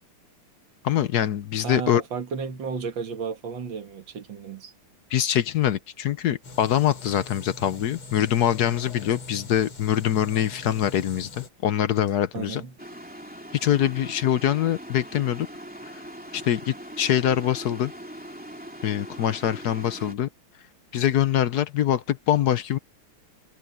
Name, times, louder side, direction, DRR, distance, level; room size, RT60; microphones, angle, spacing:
voice 1, 0.8-2.0 5.1-12.6 13.6-15.5 16.3-17.9 18.8-20.3 20.9-22.8, left 11 dB, 65° left, 1.1 m, -24 dB
voice 2, 1.6-4.7 12.3-12.7, right 5 dB, 65° right, 2.4 m, -33 dB
sound 1, 6.4-11.5, left 2 dB, 85° left, 4.9 m, -42 dB
sound 2, 12.8-20.1, equal, 5° right, 2.7 m, -41 dB
omnidirectional pair, 2.3 m